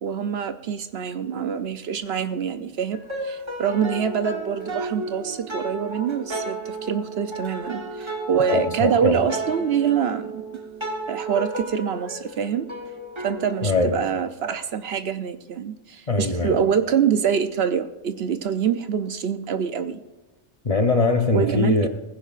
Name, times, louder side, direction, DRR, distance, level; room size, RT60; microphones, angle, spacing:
voice 1, 0.0-10.4 11.1-12.7 13.2-20.0 21.3-21.9, right 7 dB, 65° right, 10 dB, 0.8 m, -25 dB
sound 1, 2.9-14.0, right 2 dB, 25° right, 1.1 m, -33 dB
voice 2, 8.5-9.2 13.6-14.0 16.1-16.6 20.6-21.9, left 3 dB, 35° left, 5 dB, 0.8 m, -21 dB
19.0 x 15.5 x 2.5 m, 1.1 s
omnidirectional pair, 1.2 m